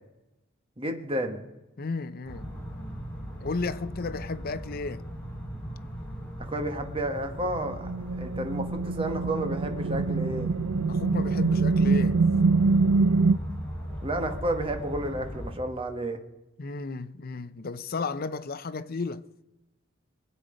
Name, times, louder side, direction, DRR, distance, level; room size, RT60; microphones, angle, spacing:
voice 1, 0.8-1.4 6.4-10.6 13.8-16.2, right 1 dB, 25° right, 1.4 m, -31 dB
voice 2, 1.8-2.5 3.4-5.0 10.9-12.2 16.6-19.3, left 3 dB, 45° left, 0.6 m, -33 dB
sound 1, 2.2-15.5, equal, 5° left, 2.5 m, -38 dB
sound 2, 7.4-13.3, right 4 dB, 80° right, 0.5 m, -24 dB
23.5 x 8.0 x 5.1 m
head